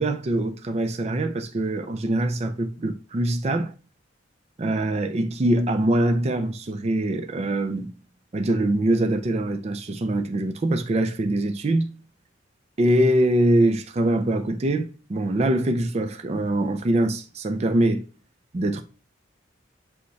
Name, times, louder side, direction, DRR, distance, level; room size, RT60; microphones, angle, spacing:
voice 1, 0.0-3.7 4.6-7.9 8.3-11.9 12.8-18.0 18.5-18.8, right 1 dB, 35° right, 0.4 m, -23 dB
5.3 x 2.2 x 3.9 m
head